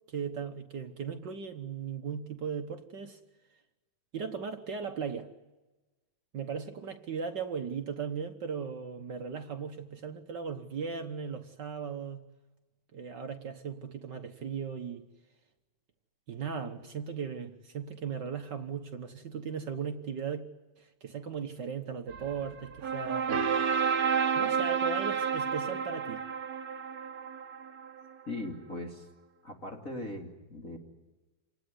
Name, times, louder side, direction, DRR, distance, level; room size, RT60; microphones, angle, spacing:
voice 1, 0.1-3.2 4.1-5.3 6.3-12.2 12.9-15.1 16.3-20.5 20.8-23.3 24.4-26.2, right 6 dB, 60° right, 1.1 m, -37 dB
sound 1, 22.1-28.0, right 6 dB, 75° right, 0.8 m, -31 dB
voice 2, 28.3-29.1 29.4-30.8, left 1 dB, 25° left, 2.8 m, -39 dB
27.0 x 19.5 x 9.7 m
omnidirectional pair, 3.5 m